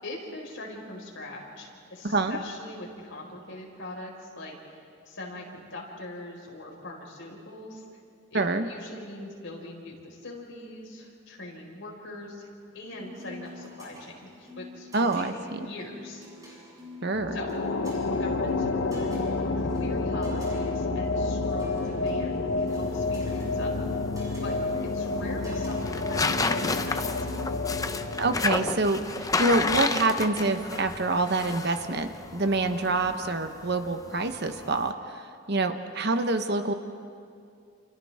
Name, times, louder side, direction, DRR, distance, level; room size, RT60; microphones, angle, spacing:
voice 1, 0.0-7.8 8.3-12.5 12.7-16.3 17.3-17.5 18.1-19.2 19.6-23.7 24.4-24.5 24.9-27.0, left 1 dB, 70° left, -2 dB, 5.0 m, -41 dB
voice 2, 2.0-2.4 8.3-8.7 14.9-15.7 17.0-17.4 28.2-29.0 29.4-36.7, right 2 dB, 55° right, 7 dB, 1.1 m, -26 dB
sound 1, 12.8-31.6, left 2 dB, 20° right, 7.8 m, -48 dB
sound 2, 17.1-29.7, left 3 dB, 85° left, 1.0 m, -30 dB
sound 3, 22.7-34.9, left 3 dB, 15° left, 0.6 m, -32 dB
29.0 x 28.5 x 3.6 m, 2.4 s
head